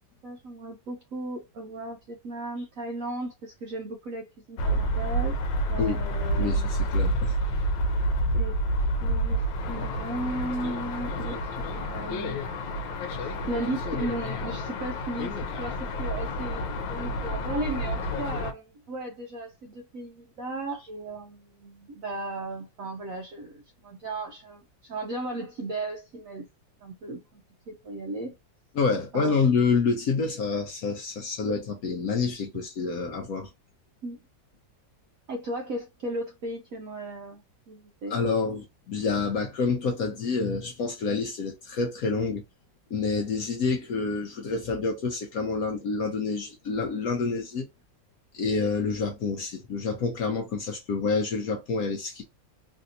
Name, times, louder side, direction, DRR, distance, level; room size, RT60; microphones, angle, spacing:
voice 1, 0.2-5.3 5.7-6.8 8.3-8.6 9.0-12.4 13.2-26.5 26.8-28.3 29.1-29.7 34.0-34.2 35.3-38.2, right 2 dB, 70° right, 0.8 m, -36 dB
sound 1, 4.6-18.5, equal, 90° left, 1.4 m, -29 dB
voice 2, 6.4-7.4 28.7-33.5 38.1-42.4 42.9-47.7 48.3-52.2, left 4 dB, 65° left, 0.9 m, -28 dB
3.3 x 2.7 x 2.6 m
omnidirectional pair, 2.1 m